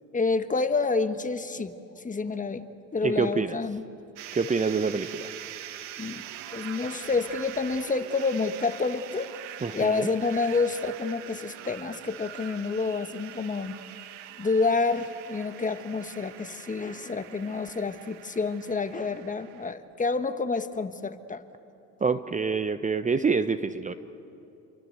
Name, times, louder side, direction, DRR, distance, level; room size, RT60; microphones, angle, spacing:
voice 1, 0.1-2.7 2.9-3.8 6.0-6.2 6.5-9.3 9.7-13.8 14.4-21.4, left 4 dB, 20° left, 10 dB, 1.4 m, -28 dB
voice 2, 3.0-3.6 4.3-5.3 9.6-10.1 22.0-23.9, right 5 dB, 20° right, 11 dB, 0.9 m, -26 dB
sound 1, 4.2-19.7, right 12 dB, 85° right, 1.4 m, -43 dB
28.5 x 23.0 x 8.1 m, 2.8 s
supercardioid pair, 80°, 36 cm